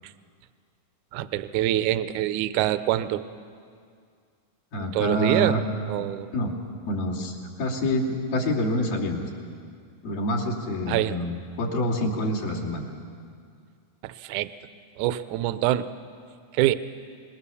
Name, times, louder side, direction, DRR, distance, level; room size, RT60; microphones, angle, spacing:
voice 1, 1.1-3.2 4.8-5.6 5.9-6.3 10.9-11.2 14.0-14.5 15.0-15.9 16.5-16.7, right 14 dB, 75° right, 13 dB, 1.8 m, -25 dB
voice 2, 4.7-5.6 6.0-6.5 6.9-9.3 10.0-12.9, equal, 80° left, -4 dB, 4.6 m, -27 dB
25.0 x 22.0 x 7.1 m, 2.2 s
omnidirectional pair, 4.0 m